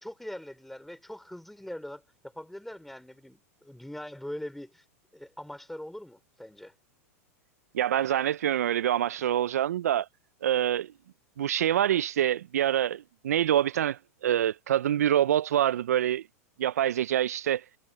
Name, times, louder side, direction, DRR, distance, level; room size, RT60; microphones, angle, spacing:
voice 1, 0.0-4.8 5.1-6.7, left 1 dB, ahead, 3.1 m, -42 dB
voice 2, 7.7-10.1 10.4-10.9 11.4-16.2 16.6-17.6, right 11 dB, 85° right, 0.4 m, -26 dB
hypercardioid pair, 110°, 8 cm